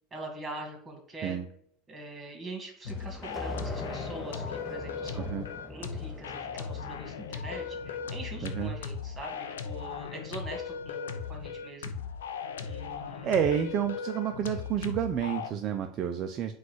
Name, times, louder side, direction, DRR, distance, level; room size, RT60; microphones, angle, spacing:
voice 1, 0.1-1.4 1.9-5.4 5.7-11.9 12.6-13.5, right 2 dB, 25° right, 2 dB, 1.6 m, -43 dB
sound 1, 2.8-15.5, left 6 dB, 85° left, 0.4 m, -38 dB
sound 2, 2.9-9.2, left 2 dB, 20° left, 0.6 m, -42 dB
voice 2, 8.4-8.7 13.2-16.5, right 9 dB, 45° right, 6 dB, 0.4 m, -30 dB
4.0 x 2.4 x 4.4 m, 0.66 s
hypercardioid pair, 90°, 0 cm